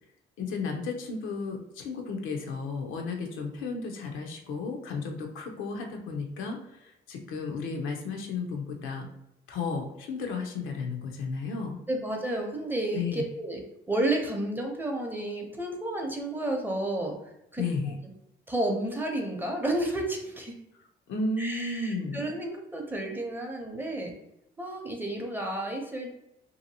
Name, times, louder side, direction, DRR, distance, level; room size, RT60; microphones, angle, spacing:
voice 1, 0.4-9.1 9.5-11.8 12.9-13.2 17.6-18.0 21.1-22.2, left 4 dB, 85° left, 2 dB, 0.6 m, -33 dB
voice 2, 11.9-17.1 17.5-17.6 18.5-20.5 21.4-24.1 24.6-26.1, right 1 dB, 10° right, 1 dB, 0.6 m, -31 dB
2.7 x 2.5 x 2.7 m, 0.82 s
cardioid pair, 90°, 20 cm